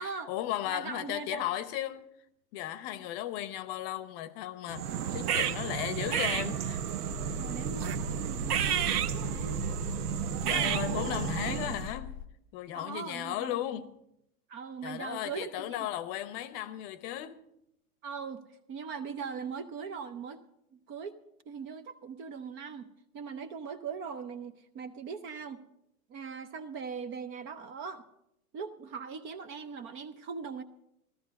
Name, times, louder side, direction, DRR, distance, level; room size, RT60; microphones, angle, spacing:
voice 1, 0.0-2.0 2.5-4.9 5.1-6.8 10.5-12.1 12.5-13.9 14.8-17.4, left 12 dB, 40° left, 0.8 m, -35 dB
voice 2, 0.7-1.5 7.4-9.6 10.4-11.1 11.5-11.6 12.7-13.5 14.5-15.9 18.0-18.4 18.7-20.4 20.7-21.2 21.5-22.9 23.1-25.6 26.1-28.0 28.5-30.6, right 6 dB, 25° right, 0.6 m, -40 dB
sound 1, 4.7-11.9, right 9 dB, 80° right, 0.9 m, -31 dB
sound 2, 7.1-12.3, left 9 dB, 20° left, 0.5 m, -42 dB
14.0 x 13.5 x 5.2 m
hypercardioid pair, 125°, 45 cm